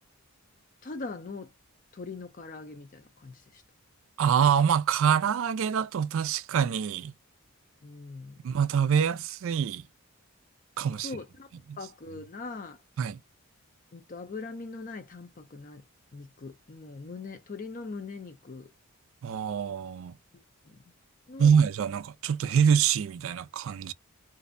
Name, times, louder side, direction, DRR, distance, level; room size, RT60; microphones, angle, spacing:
voice 1, 0.8-1.5 1.9-3.6 7.8-8.4 11.0-11.5 11.8-12.8 13.9-15.8 16.1-18.7 20.3-20.8 21.3-21.5, left 3 dB, 40° left, 0.5 m, -41 dB
voice 2, 4.2-7.1 8.4-9.8 10.8-11.1 11.7-11.8 13.0-13.2 19.2-20.1 21.4-23.9, right 7 dB, 60° right, 0.3 m, -25 dB
2.5 x 2.1 x 2.4 m
head